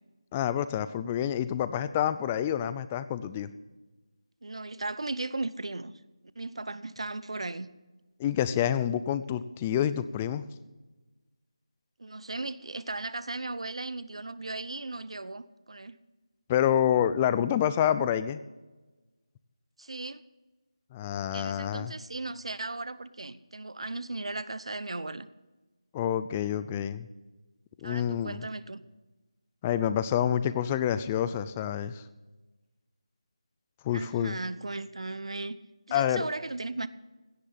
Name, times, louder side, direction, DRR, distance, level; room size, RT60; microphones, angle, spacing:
voice 1, 0.3-3.5 8.2-10.4 16.5-18.4 20.9-21.9 25.9-27.1 27.8-28.4 29.6-32.0 33.8-34.4 35.9-36.3, left 10 dB, 15° left, 14 dB, 0.4 m, -28 dB
voice 2, 4.4-5.9 6.4-7.7 12.0-16.0 19.8-20.2 21.3-25.3 27.8-28.8 33.9-35.6 35.9-36.9, right 2 dB, 70° right, 15 dB, 0.9 m, -36 dB
16.5 x 10.0 x 5.7 m, 1.2 s
figure-of-eight pair, 165°, 3 cm